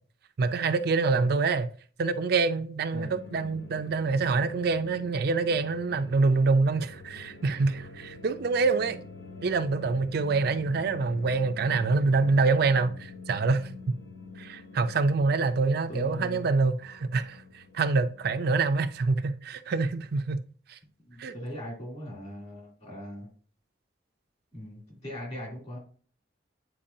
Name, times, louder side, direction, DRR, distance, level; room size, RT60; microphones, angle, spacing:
voice 1, 0.4-1.7 2.0-9.0 9.4-13.7 14.4-20.4 20.7-20.8 21.2-21.3, right 4 dB, 60° right, 0.4 m, -26 dB
sound 1, 3.1-19.5, left 3 dB, 65° left, 0.8 m, -47 dB
voice 2, 15.9-16.5 21.1-23.3 24.5-25.8, left 1 dB, 40° left, 2.8 m, -39 dB
8.7 x 4.6 x 2.7 m
head